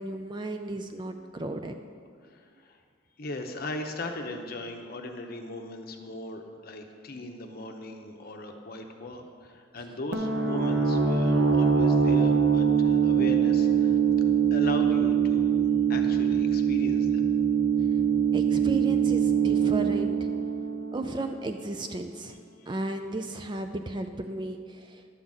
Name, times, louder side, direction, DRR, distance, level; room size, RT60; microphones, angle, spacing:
voice 1, 0.0-1.8 18.3-20.3 20.9-22.4 22.7-25.0, right 2 dB, 20° right, 6 dB, 0.3 m, -34 dB
voice 2, 2.2-2.8 3.2-14.0 14.5-17.3 22.6-22.8, left 1 dB, 45° left, 4 dB, 0.8 m, -38 dB
sound 1, 10.1-21.6, right 7 dB, 50° right, 0.7 m, -23 dB
11.5 x 4.0 x 7.3 m, 2.1 s
head